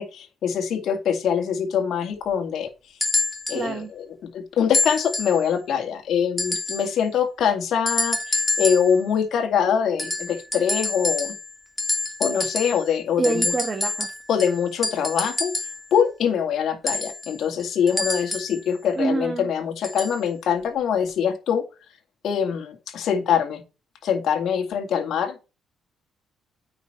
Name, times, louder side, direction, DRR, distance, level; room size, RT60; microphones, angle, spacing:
voice 1, 0.0-2.7 3.5-4.1 4.3-11.4 12.2-13.5 14.3-15.5 15.9-21.6 22.2-23.6 24.0-25.4, left 7 dB, 70° left, 4 dB, 2.1 m, -24 dB
sound 1, 3.0-3.6 4.7-5.4 6.4-6.9 7.9-9.0 10.0-11.5 11.8-12.9 13.2-15.8 16.9-18.6 19.8-20.2 21.1-21.2, left 2 dB, 15° left, 2.3 m, -27 dB
voice 2, 3.5-3.9 13.2-14.1 19.0-19.5, right 3 dB, 30° right, 4 dB, 1.6 m, -26 dB
9.1 x 5.3 x 4.3 m, 0.29 s
cardioid pair, 90°, 0 cm